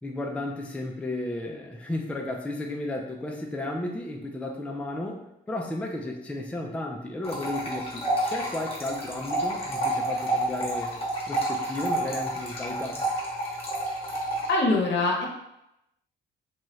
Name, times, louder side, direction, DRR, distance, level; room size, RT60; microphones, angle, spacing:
voice 1, 0.0-10.9 11.3-13.0, left 1 dB, 5° left, 0 dB, 0.4 m, -33 dB
sound 1, 7.2-14.5, right 1 dB, 30° left, 1.1 m, -29 dB
voice 2, 14.1-15.3, left 2 dB, 65° left, -1 dB, 0.8 m, -25 dB
2.7 x 2.3 x 3.1 m, 0.85 s
cardioid pair, 90°, 20 cm